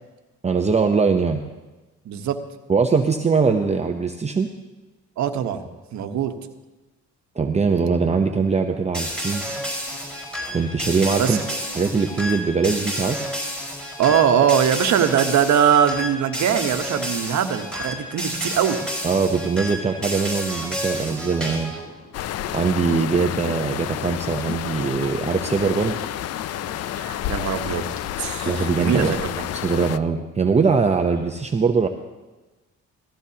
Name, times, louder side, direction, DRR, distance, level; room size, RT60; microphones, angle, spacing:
voice 1, 0.4-1.4 2.7-4.5 7.4-9.4 10.5-11.4 11.7-13.2 19.0-21.7 22.5-25.9 28.5-29.2 29.5-31.9, right 5 dB, 20° right, 4 dB, 0.7 m, -21 dB
voice 2, 2.0-2.4 5.2-5.6 5.9-6.3 11.2-11.4 14.0-18.8 26.9-27.8 28.2-29.5, right 8 dB, 70° right, 7 dB, 1.1 m, -21 dB
sound 1, 8.9-21.8, equal, 5° left, 4.8 m, -30 dB
sound 2, 17.0-17.5 18.2-18.5 19.2-28.0, left 1 dB, 40° left, 2.7 m, -46 dB
sound 3, 22.1-30.0, left 12 dB, 55° left, 0.4 m, -30 dB
17.5 x 14.0 x 2.9 m, 1.1 s
cardioid pair, 90°, 30 cm